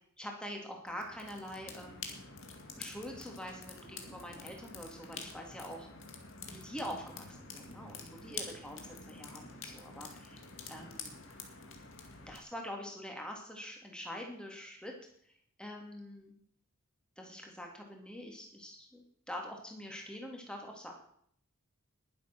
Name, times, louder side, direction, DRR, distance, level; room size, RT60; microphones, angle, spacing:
voice 1, 0.2-2.1 2.8-5.9 6.5-10.4 10.7-11.2 12.3-14.9 15.2-15.3 15.6-16.3 17.2-20.9, equal, 5° left, 1 dB, 2.6 m, -45 dB
sound 1, 0.9-12.4, left 5 dB, 60° left, 2.2 m, -48 dB
20.5 x 7.8 x 6.0 m, 0.65 s
head